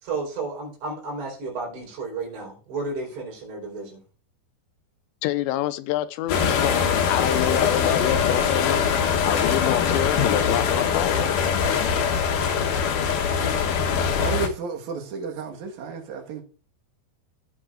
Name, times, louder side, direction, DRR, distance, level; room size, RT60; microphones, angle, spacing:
voice 1, 0.0-4.0 12.4-12.6, right 3 dB, 90° right, 6.6 m, -32 dB
voice 2, 5.2-6.8 7.1-8.9 9.2-11.3, left 13 dB, 85° left, 2.8 m, -26 dB
sound 1, 6.3-14.5, left 7 dB, 70° left, 2.1 m, -22 dB
voice 3, 14.2-16.4, right 5 dB, 60° right, 2.3 m, -32 dB
18.0 x 6.4 x 2.5 m
omnidirectional pair, 5.0 m